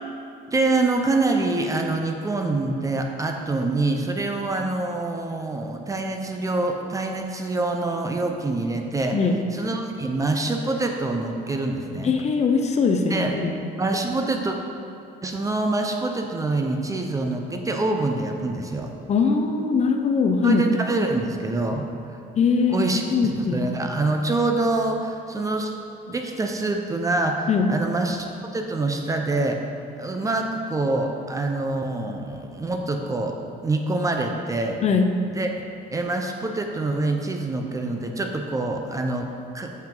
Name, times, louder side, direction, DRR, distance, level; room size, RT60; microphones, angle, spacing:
voice 1, 0.5-9.2 9.5-12.1 13.1-13.3 13.8-14.6 15.2-18.9 20.4-21.9 22.7-23.0 23.5-25.8 26.1-28.3 28.5-29.6 30.0-33.4 33.6-34.8 35.3-35.5 35.9-39.3 39.5-39.7, right 2 dB, 20° right, 3 dB, 0.6 m, -25 dB
voice 2, 12.0-13.5 19.1-20.6 22.4-23.7 27.5-27.7 34.8-35.1, left 5 dB, 40° left, 5 dB, 0.6 m, -21 dB
7.3 x 5.8 x 3.8 m, 2.7 s
cardioid pair, 110°, 17 cm